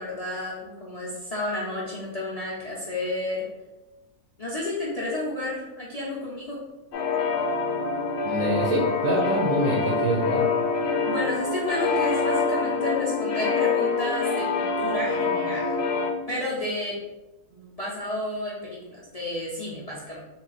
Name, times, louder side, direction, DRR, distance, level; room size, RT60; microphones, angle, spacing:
voice 1, 0.0-3.4 4.4-6.6 11.0-15.8 16.3-16.9 17.5-20.2, left 1 dB, 50° left, -6 dB, 0.4 m, -31 dB
sound 1, 6.9-16.1, left 4 dB, 80° left, 1.1 m, -25 dB
voice 2, 8.3-10.4, right 1 dB, 65° right, -2 dB, 1.0 m, -25 dB
3.9 x 2.2 x 3.9 m, 1.1 s
omnidirectional pair, 1.7 m